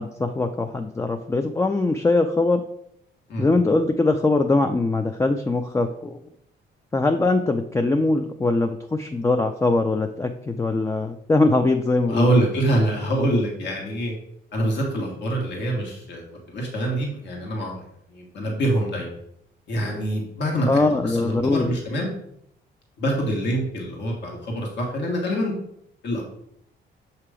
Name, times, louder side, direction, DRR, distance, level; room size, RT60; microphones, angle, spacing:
voice 1, 0.0-2.6 3.4-6.2 6.9-12.3 20.6-21.7, left 2 dB, 15° left, 6 dB, 0.4 m, -22 dB
voice 2, 12.1-14.1 14.5-17.8 18.1-19.1 19.7-22.1 23.0-25.5 26.0-26.2, right 1 dB, 65° left, -1 dB, 1.5 m, -25 dB
6.7 x 2.9 x 4.8 m, 0.73 s
cardioid pair, 90°, 20 cm